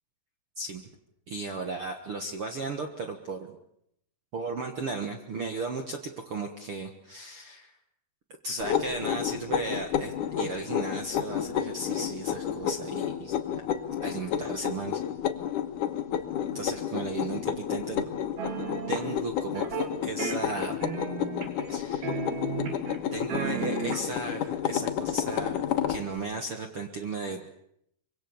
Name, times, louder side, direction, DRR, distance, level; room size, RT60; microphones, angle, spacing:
voice 1, 1.3-3.6 4.3-7.7 8.4-13.4 14.0-15.0 16.5-18.1 18.9-20.8 21.7-22.2 23.1-27.5, right 3 dB, 55° right, 5 dB, 1.6 m, -35 dB
sound 1, 8.6-26.0, left 9 dB, 65° left, 2.5 m, -31 dB
sound 2, 18.4-19.1 19.5-19.9 20.2-21.7 22.0-23.0 23.3-24.3, right 6 dB, 75° right, 4.4 m, -34 dB
25.0 x 23.0 x 7.1 m, 0.75 s
omnidirectional pair, 4.4 m